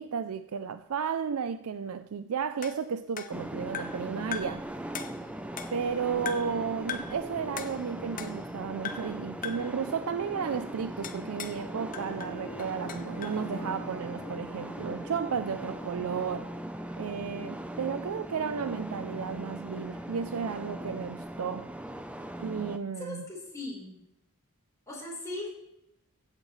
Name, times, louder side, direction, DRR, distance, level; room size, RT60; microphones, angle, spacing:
voice 1, 0.0-4.7 5.7-16.5 17.0-21.7 22.4-23.2, right 6 dB, 75° right, 0.4 m, -33 dB
sound 1, 2.6-4.1 4.3-4.7 4.9-5.9 6.3-6.6 6.9-7.2 7.6-8.6 8.8-9.2 9.4-9.8 11.0-11.6 11.9-13.4, left 7 dB, 35° left, 0.8 m, -40 dB
sound 2, 3.3-22.8, right 1 dB, 5° right, 0.6 m, -39 dB
sound 3, 11.9-17.8, left 1 dB, 70° left, 1.8 m, -47 dB
voice 2, 23.0-24.0 24.9-25.5, left 2 dB, 15° left, 4.2 m, -38 dB
15.5 x 8.4 x 3.2 m
head